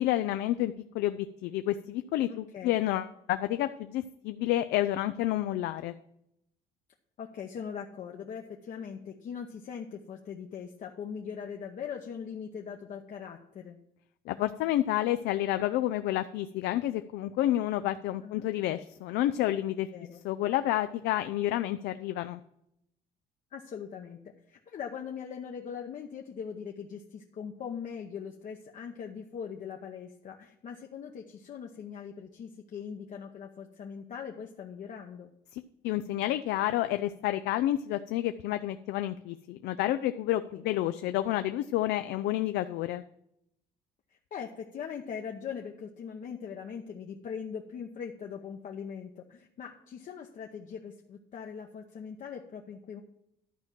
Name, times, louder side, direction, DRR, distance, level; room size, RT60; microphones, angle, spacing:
voice 1, 0.0-5.9 14.3-19.9 20.2-22.4 35.5-43.0, left 14 dB, 80° left, 10 dB, 0.4 m, -30 dB
voice 2, 2.3-2.8 7.2-13.8 18.2-18.5 19.9-20.2 23.5-24.2 24.5-35.3 40.5-40.6 44.3-53.0, left 7 dB, 50° left, 2 dB, 0.8 m, -41 dB
11.5 x 4.4 x 7.4 m, 0.78 s
cardioid pair, 110°, 17 cm